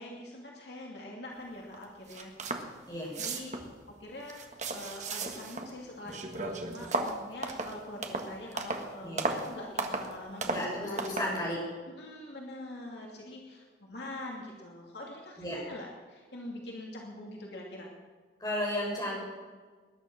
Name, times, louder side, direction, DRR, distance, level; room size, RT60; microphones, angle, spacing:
voice 1, 0.0-2.3 3.2-3.5 4.0-4.4 4.7-11.3 12.0-17.9, left 1 dB, 70° left, -1 dB, 2.6 m, -44 dB
sound 1, 1.7-1.8 2.1-2.7 3.0-3.7 4.2-5.7 6.0-8.9 9.2-9.5 9.8-10.1 10.4-10.7 11.0-11.3, right 3 dB, 40° right, 1.5 m, -34 dB
voice 2, 10.4-11.6 15.4-15.6 18.4-19.2, left 1 dB, 20° left, -4 dB, 6.4 m, -33 dB
20.0 x 10.5 x 6.2 m, 1.5 s
head